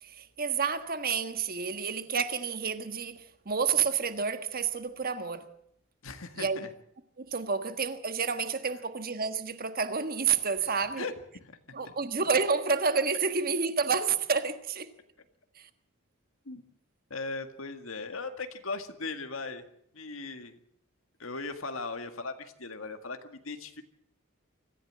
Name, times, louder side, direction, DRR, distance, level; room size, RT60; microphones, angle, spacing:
voice 1, 0.0-5.5 6.4-6.6 7.2-11.1 11.7-14.9 15.6-15.7, right 5 dB, 45° right, 1.5 m, -29 dB
voice 2, 6.0-6.7 10.6-10.7 11.0-11.1 11.4-11.5 11.8-11.9 16.5-16.6 17.1-19.6 19.9-20.6 21.2-23.8, left 3 dB, 70° left, 1.9 m, -38 dB
25.0 x 15.0 x 7.6 m
head